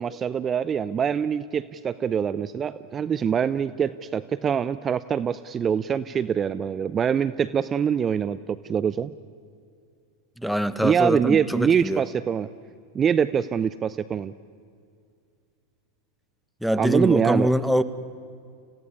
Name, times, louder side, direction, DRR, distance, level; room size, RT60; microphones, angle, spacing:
voice 1, 0.0-9.1 10.8-12.5 12.9-14.3 16.8-17.5, right 7 dB, 25° right, 16 dB, 0.6 m, -24 dB
voice 2, 10.4-12.0 16.6-17.8, equal, ahead, 12 dB, 1.2 m, -23 dB
30.0 x 16.5 x 9.7 m, 2.3 s
hypercardioid pair, 95°, 0 cm